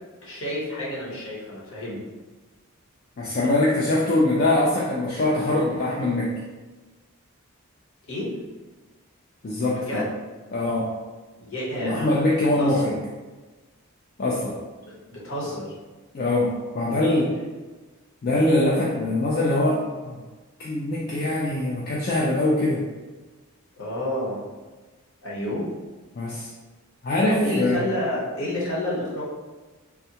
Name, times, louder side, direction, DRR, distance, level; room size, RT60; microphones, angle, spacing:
voice 1, 0.2-2.0 8.1-8.3 9.7-10.1 11.4-12.0 12.6-12.9 14.8-15.7 23.8-24.4 25.2-25.7 27.3-29.2, left 1 dB, 60° left, -6 dB, 0.9 m, -29 dB
voice 2, 3.2-6.3 9.4-10.0 10.5-10.9 11.8-13.0 14.2-14.6 16.1-17.3 18.2-20.2 20.6-22.8 26.2-26.5 27.0-27.8, left 1 dB, 40° left, -5 dB, 0.4 m, -23 dB
3.5 x 2.2 x 2.8 m, 1.3 s
head